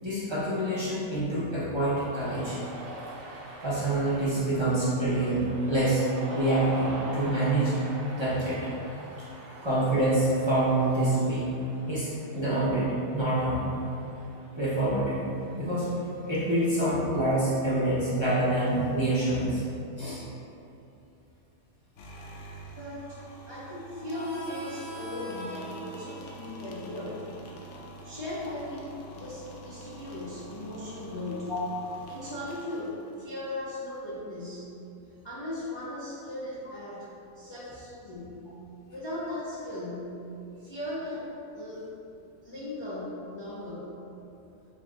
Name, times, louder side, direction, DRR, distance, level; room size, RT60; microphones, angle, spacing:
voice 1, 0.0-2.6 3.6-6.1 6.3-7.7 8.1-8.6 9.6-11.5 11.9-12.9 13.1-13.6 14.6-15.2 15.5-15.9 16.3-19.6 20.0-20.2 31.5-31.6, right 1 dB, 25° right, -11 dB, 0.7 m, -26 dB
Cheering, 1.9-16.7, right 1 dB, 70° right, 1.0 m, -45 dB
sound 1, 22.0-33.3, right 2 dB, 70° left, 0.8 m, -47 dB
voice 2, 22.7-23.2 23.5-27.2 28.0-31.5 32.1-34.7 35.2-37.1 37.3-38.4 38.9-40.1 40.6-41.3 41.5-41.9 42.4-43.9, left 1 dB, 40° left, -10 dB, 0.4 m, -37 dB
Harmonica, 24.1-29.4, equal, 85° left, 1.2 m, -44 dB
6.3 x 2.6 x 2.4 m, 2.7 s
omnidirectional pair, 1.5 m